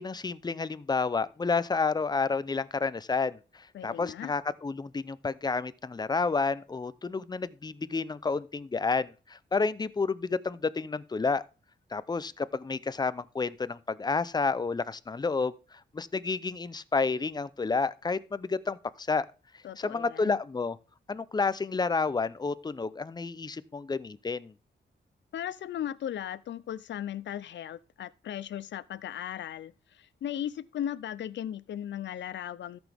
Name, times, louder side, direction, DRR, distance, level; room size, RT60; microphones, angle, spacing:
voice 1, 0.0-11.4 11.9-19.3 19.8-20.8 21.1-24.5, left 4 dB, 20° left, 0.5 m, -30 dB
voice 2, 3.7-4.3 19.6-20.4 25.3-32.8, left 10 dB, 75° left, 0.5 m, -37 dB
13.5 x 6.1 x 3.5 m
wide cardioid pair, 110°, 19 cm